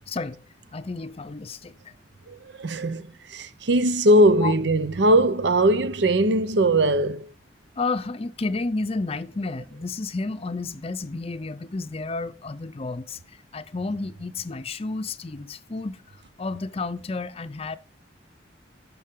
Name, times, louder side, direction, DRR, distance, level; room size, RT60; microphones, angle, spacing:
voice 1, 0.1-0.4 0.7-1.7 4.4-4.5 7.8-13.2 13.5-16.0 16.4-17.8, left 3 dB, 35° left, 0.6 m, -31 dB
voice 2, 2.3-7.3, right 1 dB, 75° right, 0.7 m, -20 dB
12.0 x 5.5 x 3.7 m
head